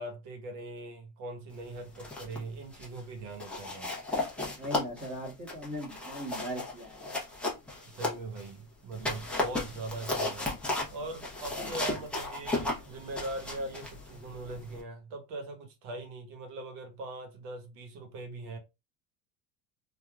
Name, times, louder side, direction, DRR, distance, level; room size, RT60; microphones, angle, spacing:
voice 1, 0.0-3.9 7.8-10.5 10.9-18.6, right 2 dB, 75° right, 1.3 m, -41 dB
sound 1, 1.8-2.4 2.7-3.0 3.4-8.5 8.9-14.8, left 2 dB, 5° left, 0.8 m, -35 dB
voice 2, 4.6-7.2 11.6-11.8, equal, 30° right, 1.4 m, -39 dB
3.5 x 2.6 x 2.4 m
cardioid pair, 145°, 41 cm